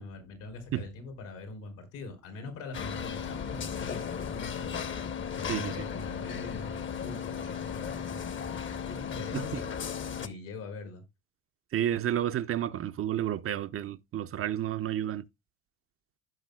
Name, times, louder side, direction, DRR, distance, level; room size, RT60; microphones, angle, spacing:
voice 1, 0.0-11.0, left 3 dB, 85° left, 3.8 m, -43 dB
sound 1, 2.7-10.3, left 7 dB, 40° left, 0.9 m, -36 dB
voice 2, 5.5-5.9 9.3-9.6 11.7-15.3, right 11 dB, 45° right, 0.6 m, -31 dB
15.5 x 5.4 x 2.3 m
supercardioid pair, 85°, 31 cm